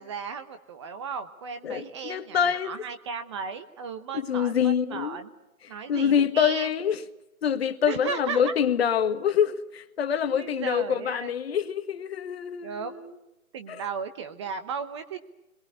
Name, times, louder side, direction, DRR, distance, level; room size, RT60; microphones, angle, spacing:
voice 1, 0.0-5.3 5.7-6.7 7.8-8.5 10.2-11.3 12.6-13.1 13.5-15.2, right 6 dB, 20° right, 0.9 m, -35 dB
voice 2, 1.6-2.7 4.1-5.2 5.9-7.0 7.4-13.1, left 8 dB, 45° left, 1.7 m, -25 dB
28.0 x 22.5 x 8.2 m
figure-of-eight pair, 150°, 43 cm